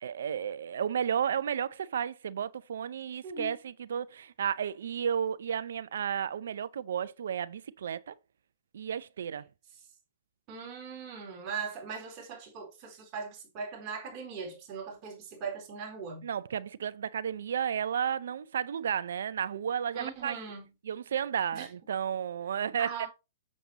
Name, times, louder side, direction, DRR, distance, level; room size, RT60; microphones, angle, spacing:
voice 1, 0.0-8.1 8.7-9.5 16.2-20.4 20.9-23.1, right 8 dB, 75° right, 0.5 m, -33 dB
voice 2, 3.2-3.6 10.5-16.3 19.9-20.7 21.5-21.7 22.8-23.1, right 5 dB, 40° right, 4.3 m, -40 dB
7.4 x 7.0 x 2.9 m
hypercardioid pair, 120°, 0 cm